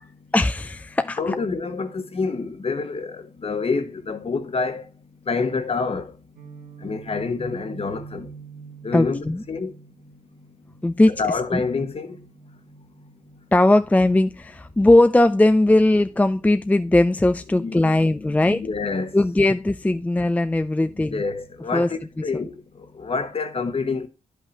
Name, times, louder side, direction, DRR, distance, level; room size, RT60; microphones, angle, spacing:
voice 1, 0.3-1.4 8.9-9.4 10.8-11.2 11.5-11.6 13.5-18.6 19.1-21.2 21.7-21.9, left 1 dB, 10° left, 0.4 m, -19 dB
voice 2, 1.2-4.9 5.3-6.1 6.8-8.3 8.8-9.7 11.1-12.2 17.5-19.1 20.8-22.6 23.0-24.1, left 4 dB, 45° left, 1.2 m, -27 dB
Guitar, 6.4-14.2, right 6 dB, 85° right, 1.9 m, -46 dB
10.0 x 5.5 x 2.9 m
cardioid pair, 65°, 14 cm